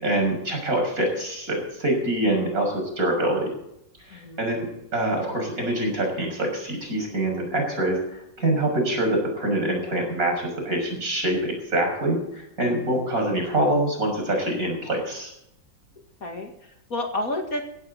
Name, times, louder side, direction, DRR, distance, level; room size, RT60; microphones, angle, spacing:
voice 1, 0.0-3.5 4.0-4.7 4.9-15.3, right 1 dB, 50° right, 2 dB, 6.7 m, -25 dB
voice 2, 4.1-4.4 16.2-17.6, left 1 dB, 50° left, 3 dB, 2.4 m, -30 dB
17.0 x 16.0 x 4.1 m, 0.79 s
omnidirectional pair, 2.0 m